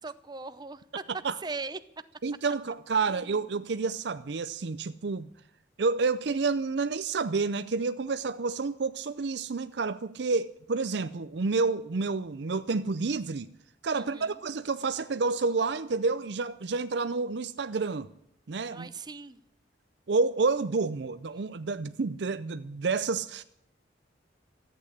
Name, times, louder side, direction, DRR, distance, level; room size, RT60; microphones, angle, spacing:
voice 1, 0.0-1.0 1.4-2.0 3.1-3.5 13.9-14.4 18.7-19.4, right 3 dB, 20° right, 0.7 m, -40 dB
voice 2, 2.2-5.3 5.8-13.5 13.8-18.1 18.5-18.9 20.1-23.4, right 4 dB, 70° right, 0.5 m, -29 dB
14.0 x 8.7 x 10.0 m
head